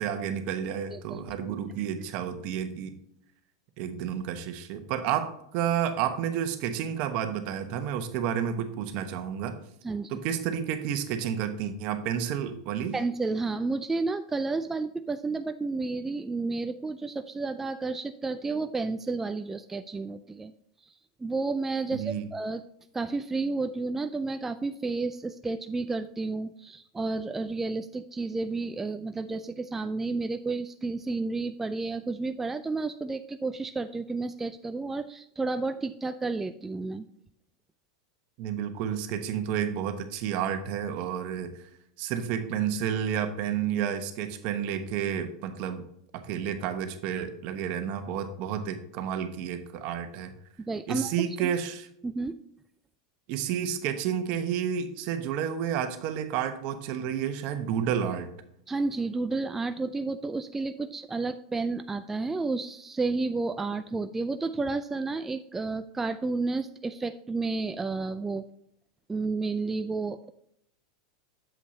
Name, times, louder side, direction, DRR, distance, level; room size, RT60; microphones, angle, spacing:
voice 1, 0.0-2.9 3.8-9.6 10.1-13.0 21.9-22.3 38.4-41.7 42.0-45.8 46.1-50.3 50.9-51.9 53.3-58.3, right 9 dB, 55° right, 8 dB, 1.1 m, -30 dB
voice 2, 0.9-1.2 9.8-10.1 12.9-20.5 20.8-20.9 21.2-22.6 22.9-37.1 50.6-51.5 52.0-52.3 58.7-68.5 69.1-70.3, right 3 dB, 10° right, 9 dB, 0.4 m, -31 dB
8.3 x 7.4 x 2.8 m, 0.72 s
hypercardioid pair, 105°, 3 cm